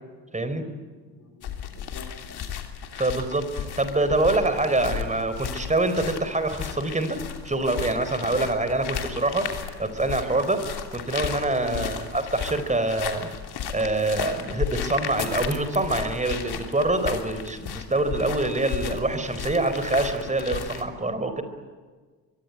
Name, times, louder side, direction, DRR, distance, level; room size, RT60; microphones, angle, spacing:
voice 1, 0.3-0.6 2.9-7.2 7.4-9.5 9.8-10.6 10.9-13.3 13.7-21.4, right 2 dB, 15° right, 9 dB, 4.4 m, -25 dB
voice 2, 1.0-2.4 11.6-11.9, left 4 dB, 35° left, 2 dB, 4.8 m, -45 dB
sound 1, 1.4-20.8, left 8 dB, 50° left, 3.1 m, -34 dB
25.5 x 23.0 x 9.4 m, 1.4 s
hypercardioid pair, 55°, 48 cm